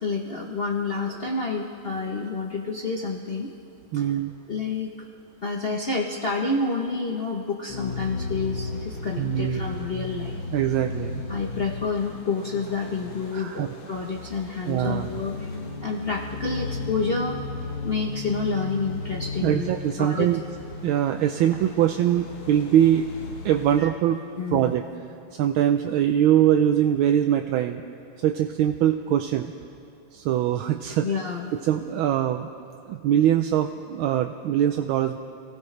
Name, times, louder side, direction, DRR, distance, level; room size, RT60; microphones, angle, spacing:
voice 1, 0.0-3.5 3.9-4.0 4.5-4.9 5.4-10.4 11.3-17.4 17.8-19.7 20.0-20.3 23.8-23.9 24.4-24.7 31.0-31.5, left 4 dB, 55° left, 0 dB, 0.6 m, -29 dB
voice 2, 3.9-4.3 9.2-9.8 10.5-11.2 13.3-13.7 14.7-15.1 19.4-20.4 20.8-23.1 23.4-24.2 24.5-24.8 25.3-27.8 28.2-29.5 30.1-31.1 31.6-32.5 32.9-35.2, right 11 dB, 80° right, 6 dB, 1.4 m, -22 dB
sound 1, 7.7-23.8, left 3 dB, 75° left, 2.2 m, -35 dB
27.5 x 16.0 x 3.2 m, 2.6 s
omnidirectional pair, 2.3 m